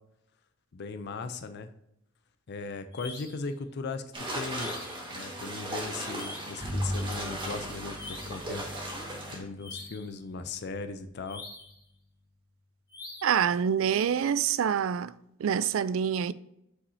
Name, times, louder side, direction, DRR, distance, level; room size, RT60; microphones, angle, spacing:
voice 1, 0.7-1.7 2.5-4.0 4.3-4.8 5.1-8.6 9.3-11.4, left 4 dB, 55° left, 0.5 m, -38 dB
sound 1, 2.9-3.5 4.5-5.1 6.1-6.7 7.9-8.5 9.6-10.1 11.2-11.8 12.9-13.5, left 3 dB, 20° left, 1.3 m, -45 dB
sound 2, 4.1-9.4, right 1 dB, 25° right, 1.6 m, -37 dB
Bowed string instrument, 6.6-12.2, equal, 5° right, 2.3 m, -39 dB
voice 2, 13.2-15.1 15.4-16.3, right 8 dB, 75° right, 0.4 m, -26 dB
8.2 x 5.6 x 2.7 m
head